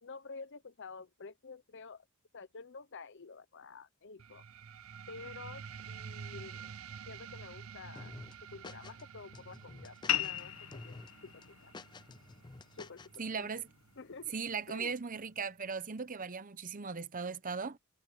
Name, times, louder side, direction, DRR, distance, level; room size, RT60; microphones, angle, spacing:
voice 1, 0.0-2.0 2.3-4.4 5.1-6.7 7.1-8.2 8.5-11.7 12.7-13.0 13.4-13.5 14.0-14.3 14.7-14.9, left 4 dB, 55° left, 0.9 m, -50 dB
sound 1, 4.2-15.2, right 6 dB, 70° right, 0.6 m, -50 dB
sound 2, 8.0-9.0 9.3-10.4 10.7-11.1 11.4-13.2, left 3 dB, 20° left, 0.4 m, -50 dB
sound 3, 10.1-15.1, left 11 dB, 75° left, 1.2 m, -40 dB
voice 2, 13.2-13.7 14.3-17.8, right 5 dB, 40° right, 0.9 m, -38 dB
head